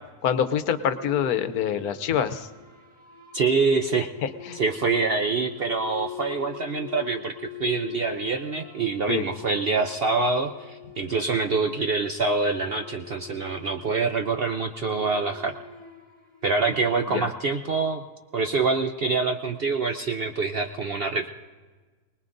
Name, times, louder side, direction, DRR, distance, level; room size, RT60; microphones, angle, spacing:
voice 1, 0.2-2.5 4.2-4.6 9.1-9.3 17.1-17.3, left 8 dB, 75° left, 11 dB, 1.2 m, -25 dB
sound 1, 0.7-17.3, left 10 dB, 20° left, 3.4 m, -43 dB
voice 2, 3.3-4.1 4.5-7.3 7.6-15.5 16.4-18.0 18.3-21.3, right 4 dB, 55° right, 5 dB, 0.7 m, -25 dB
23.5 x 19.5 x 2.6 m, 1.4 s
omnidirectional pair, 1.6 m